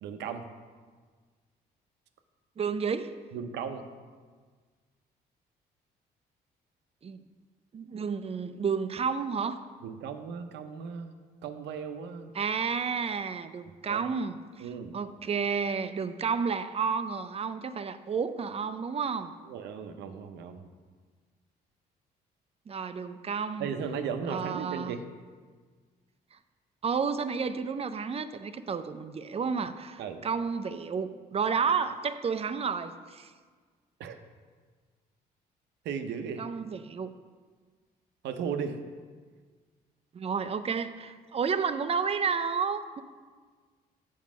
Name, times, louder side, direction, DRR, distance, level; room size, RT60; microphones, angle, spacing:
voice 1, 0.0-0.4 3.3-3.8 9.8-11.1 11.4-12.3 13.9-14.1 14.6-14.9 19.5-20.7 23.6-25.0 30.0-30.2 34.0-34.2 35.8-36.4 38.2-38.8, right 6 dB, 80° right, 7 dB, 0.7 m, -36 dB
voice 2, 2.6-3.1 7.0-7.2 7.7-9.6 12.3-14.7 14.9-19.3 22.7-23.7 24.3-25.0 26.8-33.3 36.4-37.1 40.1-43.0, right 6 dB, 35° right, 11 dB, 0.5 m, -31 dB
7.4 x 4.6 x 6.1 m, 1.5 s
supercardioid pair, 70°, 18 cm